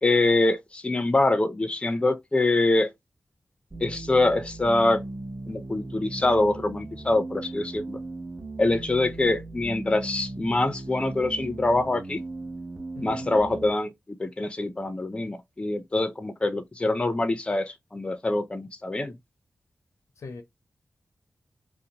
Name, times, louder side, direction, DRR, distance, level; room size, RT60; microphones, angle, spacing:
voice 1, 0.0-2.9 3.8-5.0 5.5-8.0 8.6-12.2 13.0-13.9 14.2-19.2, left 2 dB, 20° left, 0.4 m, -24 dB
sound 1, 3.7-13.7, right 2 dB, 35° right, 0.7 m, -38 dB
voice 2, 12.9-13.3 20.2-20.4, left 4 dB, 85° left, 0.5 m, -41 dB
2.5 x 2.0 x 2.8 m
wide cardioid pair, 70°, 5 cm